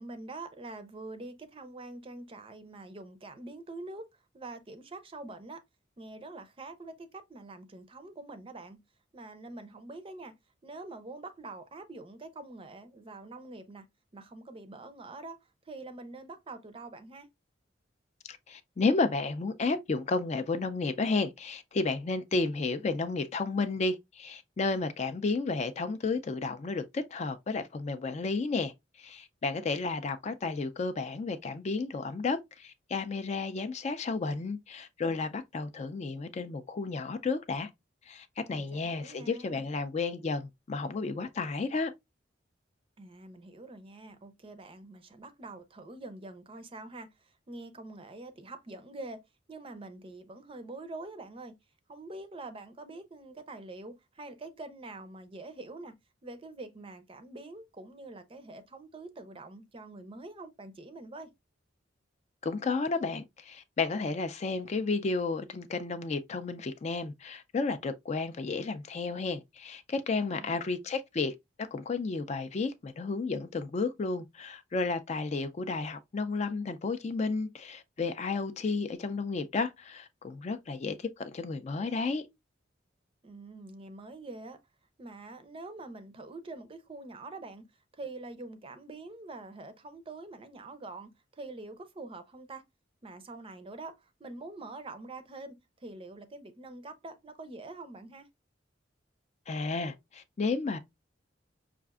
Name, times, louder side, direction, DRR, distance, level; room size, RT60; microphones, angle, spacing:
voice 1, 0.0-4.1 4.3-5.6 6.0-8.8 9.1-10.3 10.6-13.9 14.1-17.3 38.5-39.6 43.0-49.2 49.5-51.5 51.9-55.9 56.2-61.3 70.2-70.5 83.2-84.6 85.0-87.6 87.9-92.6 93.0-98.3, right 2 dB, 30° right, 0.5 m, -45 dB
voice 2, 18.3-28.7 29.0-37.7 38.1-41.9 62.4-71.3 71.7-82.2 99.5-100.8, left 3 dB, 35° left, 0.4 m, -32 dB
5.7 x 2.4 x 2.3 m
head